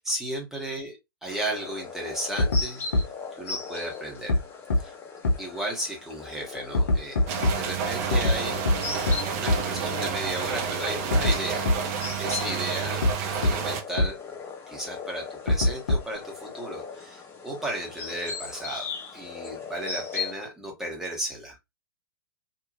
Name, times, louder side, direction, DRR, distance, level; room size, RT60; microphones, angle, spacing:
voice 1, 0.0-2.8 3.4-4.3 4.8-4.9 5.4-8.6 9.3-11.7 12.1-14.2 14.7-21.6, right 1 dB, 5° right, 1.2 m, -34 dB
sound 1, 1.3-20.3, left 5 dB, 20° left, 0.7 m, -39 dB
sound 2, 2.4-2.6 2.9-3.0 4.3-4.4 4.7-4.8 5.2-5.3 6.7-7.5 8.1-8.3 8.7-8.8 9.1-9.2 9.5-9.6 11.1-11.3 11.7-11.8 13.0-13.1 13.4-13.5 14.0-14.1 15.5-16.2, left 1 dB, 60° left, 0.9 m, -21 dB
sound 3, 7.3-13.8, right 6 dB, 40° right, 0.6 m, -30 dB
2.8 x 2.8 x 2.5 m
figure-of-eight pair, 105°, 12 cm